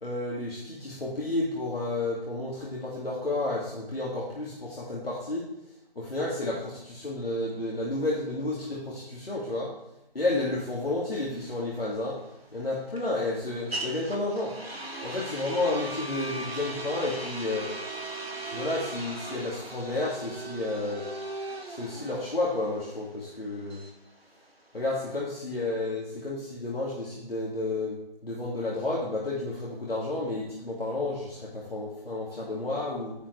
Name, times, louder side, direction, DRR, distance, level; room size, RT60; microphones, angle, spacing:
voice 1, 0.0-5.4 6.0-9.7 10.1-12.2 12.5-14.5 15.0-17.7 18.4-21.1 21.7-23.8 24.7-33.1, left 2 dB, 70° left, -6 dB, 2.4 m, -31 dB
sound 1, 11.3-25.2, right 2 dB, 85° right, 1.8 m, -38 dB
10.0 x 7.5 x 3.4 m, 0.88 s
figure-of-eight pair, 160°, 30 cm